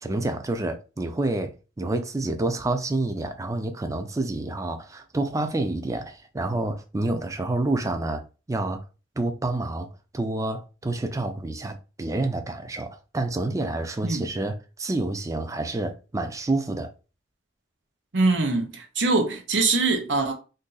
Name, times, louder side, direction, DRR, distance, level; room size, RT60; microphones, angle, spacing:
voice 1, 0.0-8.2 8.5-8.8 9.2-9.9 10.1-16.9, right 2 dB, 20° right, 0.4 m, -28 dB
voice 2, 18.1-20.3, right 3 dB, 85° right, 0.8 m, -23 dB
2.7 x 2.6 x 3.8 m
head